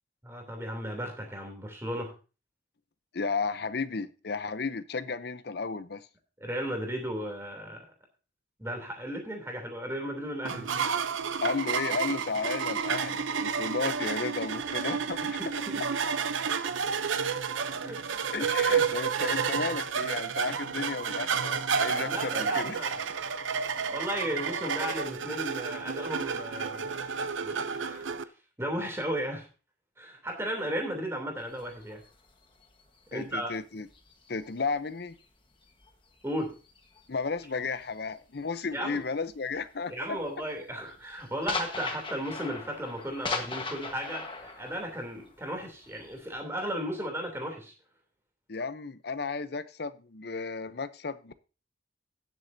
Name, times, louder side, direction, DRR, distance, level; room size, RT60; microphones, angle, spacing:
voice 1, 0.2-2.1 6.4-7.8 8.6-10.7 15.2-15.8 17.8-18.0 18.7-18.9 22.0-23.3 23.9-27.0 27.4-28.1 28.6-29.5 30.0-32.0 33.1-33.5 36.2-36.5 38.7-39.0 39.9-47.7, equal, 15° right, 2 dB, 3.0 m, -35 dB
voice 2, 3.1-6.1 11.4-15.4 18.3-22.8 33.1-33.9 34.3-35.1 37.1-40.2 48.5-51.3, left 4 dB, 55° left, 13 dB, 0.7 m, -33 dB
sound 1, 10.4-28.2, right 6 dB, 80° right, 0.6 m, -30 dB
sound 2, 31.4-35.2 35.6-39.0 39.3-39.6 40.0-46.4, left 4 dB, 25° left, 1.3 m, -39 dB
18.0 x 7.5 x 2.7 m, 0.33 s
head